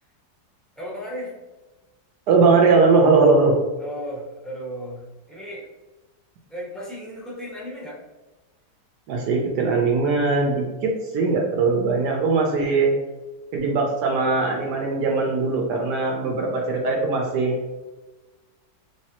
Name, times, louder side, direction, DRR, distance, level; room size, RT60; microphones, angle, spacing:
voice 1, 0.8-1.4 3.8-5.6 6.5-8.0, equal, ahead, -8 dB, 0.6 m, -35 dB
voice 2, 2.3-3.5 9.1-12.9 13.5-17.6, right 4 dB, 70° right, 1 dB, 1.1 m, -20 dB
3.4 x 3.1 x 2.8 m, 1.1 s
omnidirectional pair, 1.9 m